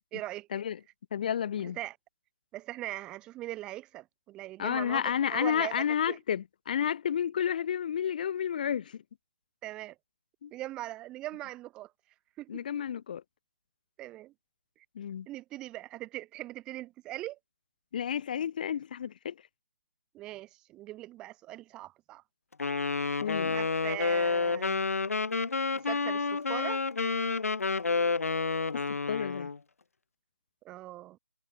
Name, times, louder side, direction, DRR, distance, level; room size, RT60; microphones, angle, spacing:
voice 1, 0.1-0.6 1.8-2.0 2.5-6.2 9.6-10.0 10.5-11.9 12.4-12.8 14.0-14.3 15.3-17.4 20.1-22.2 23.5-24.9 25.7-26.8 30.6-31.2, right 16 dB, 10° right, 0.6 m, -41 dB
voice 2, 1.1-1.8 4.6-9.0 10.4-10.5 12.5-13.2 14.9-15.3 17.9-19.3 23.2-23.6 28.7-29.5, left 8 dB, 35° left, 1.1 m, -31 dB
Wind instrument woodwind instrument, 22.6-29.6, left 4 dB, 80° left, 0.3 m, -29 dB
figure-of-eight pair, 150°, 8 cm